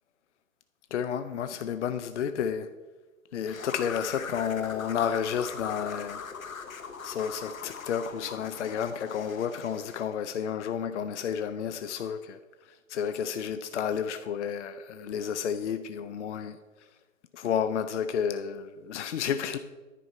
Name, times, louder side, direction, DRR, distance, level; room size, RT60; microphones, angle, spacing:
voice 1, 0.9-2.7 3.3-6.2 7.0-12.4 12.9-16.6 17.3-19.6, left 8 dB, 60° left, 0.6 m, -31 dB
sound 1, 3.5-10.1, left 6 dB, 85° left, 0.9 m, -41 dB
9.9 x 4.5 x 5.5 m
figure-of-eight pair, 130°, 40 cm